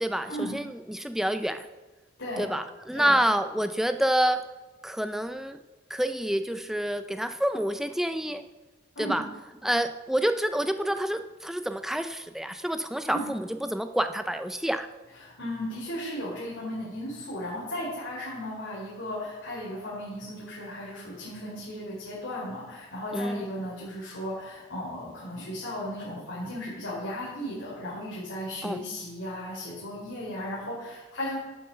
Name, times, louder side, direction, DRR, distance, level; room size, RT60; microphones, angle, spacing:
voice 1, 0.0-1.7 2.4-4.4 4.8-5.6 5.9-8.5 9.0-9.2 9.6-14.9 23.1-23.4 28.6-28.8, right 1 dB, ahead, 8 dB, 0.5 m, -28 dB
voice 2, 15.2-31.4, equal, 90° left, -7 dB, 3.8 m, -35 dB
11.0 x 7.2 x 5.6 m, 1.2 s
head